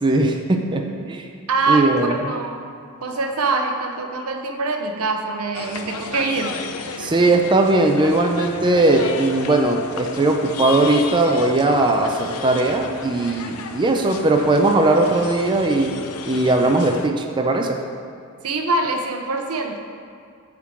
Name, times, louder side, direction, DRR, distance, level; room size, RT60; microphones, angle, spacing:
voice 1, 0.0-1.3 1.7-2.1 7.0-17.8, right 2 dB, 20° right, 2 dB, 0.4 m, -19 dB
voice 2, 1.5-2.6 3.0-6.6 18.4-19.8, right 3 dB, 80° right, 5 dB, 0.7 m, -24 dB
sound 1, 5.5-17.1, left 5 dB, 75° left, 0.5 m, -33 dB
8.2 x 3.7 x 6.1 m, 2.4 s
head